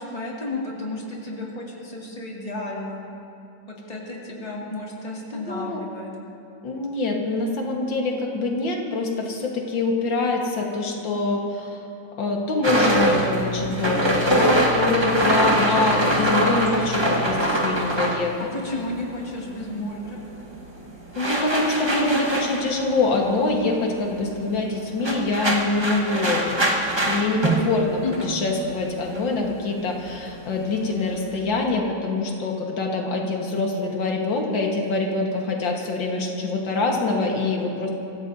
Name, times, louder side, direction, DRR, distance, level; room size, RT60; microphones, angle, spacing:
voice 1, 0.0-3.0 3.7-6.1 18.5-20.2 28.0-28.4, left 2 dB, 20° left, -4 dB, 2.3 m, -32 dB
voice 2, 5.3-5.8 6.6-11.8 12.2-18.5 21.2-26.6 27.0-37.9, left 3 dB, 85° left, 0 dB, 2.2 m, -25 dB
sound 1, 12.6-19.3 19.6-31.2, right 1 dB, 15° right, 1.1 m, -24 dB
25.0 x 15.5 x 2.7 m, 2.7 s
omnidirectional pair, 2.0 m